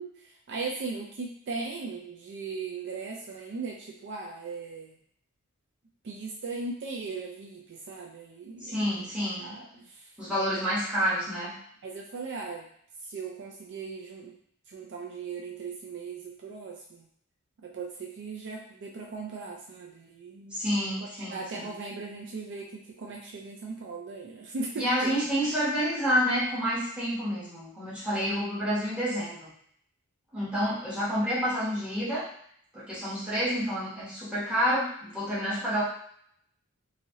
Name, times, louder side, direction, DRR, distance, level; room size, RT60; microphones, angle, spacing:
voice 1, 0.0-5.0 6.0-8.9 9.4-10.1 11.8-12.7 13.1-14.3 14.7-17.1 17.6-20.6 21.0-25.1, right 4 dB, 55° right, -1 dB, 0.4 m, -38 dB
voice 2, 8.6-9.6 10.2-11.5 20.5-21.6 24.8-29.5 30.3-32.3 32.7-35.8, equal, 5° right, -10 dB, 1.2 m, -29 dB
3.1 x 2.6 x 2.7 m, 0.66 s
head